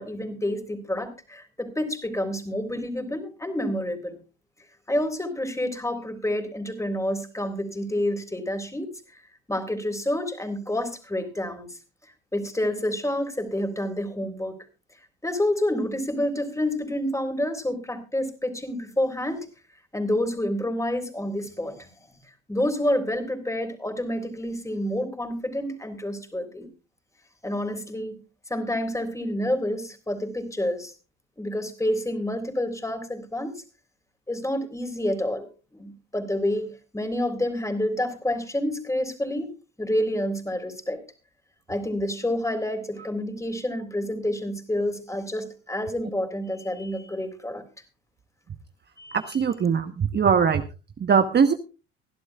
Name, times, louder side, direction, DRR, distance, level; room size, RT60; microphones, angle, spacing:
voice 1, 0.0-4.2 4.9-9.2 9.5-11.7 12.3-14.6 15.2-19.5 19.9-21.9 22.5-26.7 27.4-28.2 28.5-30.9 31.4-33.6 34.3-35.5 35.7-36.7 36.9-41.0 41.7-47.6 49.0-49.4, left 1 dB, 10° left, 7 dB, 3.6 m, -28 dB
voice 2, 49.3-50.6 51.0-51.5, right 6 dB, 35° right, 8 dB, 1.1 m, -21 dB
24.5 x 11.5 x 2.4 m, 0.31 s
hypercardioid pair, 65°, 31 cm